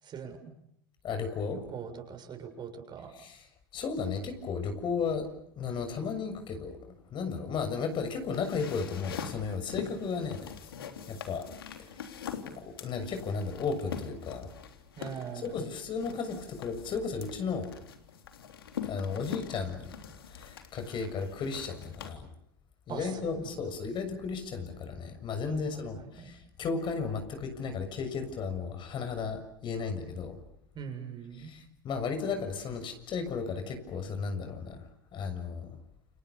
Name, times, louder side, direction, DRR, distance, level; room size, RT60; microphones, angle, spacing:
voice 1, 0.0-0.4 1.7-3.1 15.0-15.6 22.9-23.5 25.5-26.3 30.7-31.5, right 6 dB, 40° right, 5 dB, 7.3 m, -41 dB
voice 2, 1.0-1.6 3.2-3.4 3.7-5.3 5.6-10.5 11.1-11.5 12.6-14.5 15.5-17.7 18.8-19.9 20.3-22.3 22.9-30.4 31.4-34.8 35.1-35.8, left 5 dB, 40° left, 7 dB, 6.7 m, -34 dB
sound 1, 7.8-22.1, left 8 dB, 85° left, 3.4 m, -44 dB
30.0 x 28.5 x 7.0 m, 0.73 s
hypercardioid pair, 85°, 12 cm